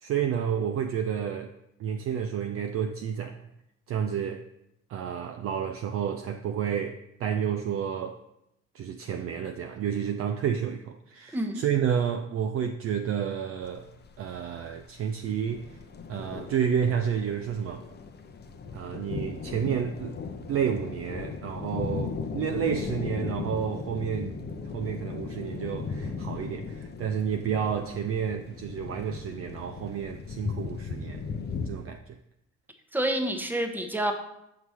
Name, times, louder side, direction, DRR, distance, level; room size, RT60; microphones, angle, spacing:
voice 1, 0.0-1.5 1.8-3.4 3.9-4.4 4.9-8.2 8.7-13.9 14.2-15.6 16.1-17.9 18.7-20.1 20.5-24.4 24.7-31.2 31.6-32.0, right 8 dB, 35° right, 0.5 m, -30 dB
sound 1, 13.6-31.7, left 5 dB, 25° left, 0.7 m, -37 dB
voice 2, 32.9-34.1, right 1 dB, 5° right, 0.9 m, -28 dB
6.7 x 4.5 x 4.2 m
figure-of-eight pair, 50°, 39 cm